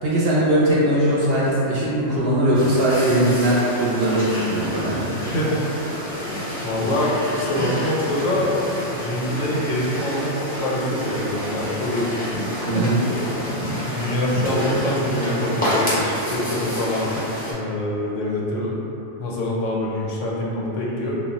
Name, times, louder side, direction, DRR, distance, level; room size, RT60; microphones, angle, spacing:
voice 1, 0.0-5.0 12.7-13.0, right 1 dB, 60° right, -7 dB, 0.7 m, -20 dB
sound 1, 2.5-17.5, equal, 10° left, 0.6 m, -28 dB
voice 2, 5.0-6.0 6.6-8.6 8.9-12.3 12.7-12.9 13.6-17.1 17.5-18.8 19.2-21.2, left 1 dB, 85° left, -4 dB, 0.9 m, -25 dB
2.2 x 2.1 x 3.8 m, 3.0 s
omnidirectional pair, 1.3 m